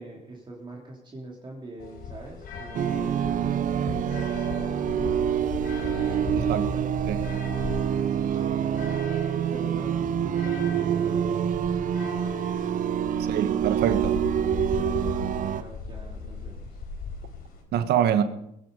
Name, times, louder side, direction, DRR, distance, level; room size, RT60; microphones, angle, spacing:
voice 1, 0.0-7.0 8.3-9.0 9.5-11.7 14.7-16.8, right 2 dB, 25° right, 3.2 m, -44 dB
sound 1, 1.8-17.6, left 4 dB, 60° left, 4.5 m, -37 dB
sound 2, 2.7-15.6, right 9 dB, 50° right, 0.7 m, -26 dB
sound 3, 3.6-11.5, left 3 dB, 30° left, 5.3 m, -46 dB
voice 2, 6.3-6.7 7.1-7.2 13.3-14.2 17.7-18.2, right 10 dB, 75° right, 1.4 m, -24 dB
21.5 x 10.5 x 5.3 m
cardioid pair, 110°, 17 cm